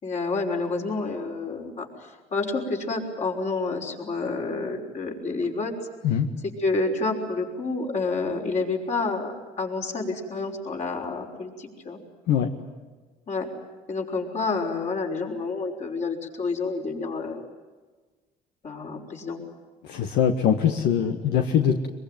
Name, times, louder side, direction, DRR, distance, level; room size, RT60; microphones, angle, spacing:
voice 1, 0.0-5.7 6.4-12.0 13.3-13.5 13.9-17.4 18.6-19.4 21.0-21.2, left 3 dB, 45° left, 1 dB, 5.8 m, -29 dB
voice 2, 19.8-21.9, left 8 dB, 85° left, 5 dB, 1.7 m, -22 dB
23.5 x 23.5 x 9.4 m, 1.3 s
cardioid pair, 110°, 17 cm